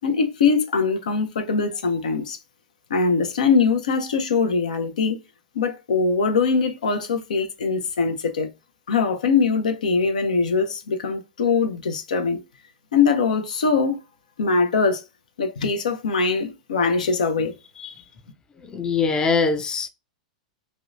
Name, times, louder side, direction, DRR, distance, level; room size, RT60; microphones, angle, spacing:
voice 1, 0.0-2.4 2.9-5.2 5.5-8.5 8.9-12.4 12.9-14.0 14.4-15.0 15.4-17.5, left 4 dB, 75° left, 0.5 m, -22 dB
voice 2, 18.7-19.9, left 4 dB, 20° left, 0.4 m, -23 dB
2.7 x 2.1 x 2.4 m
hypercardioid pair, 100°, 4 cm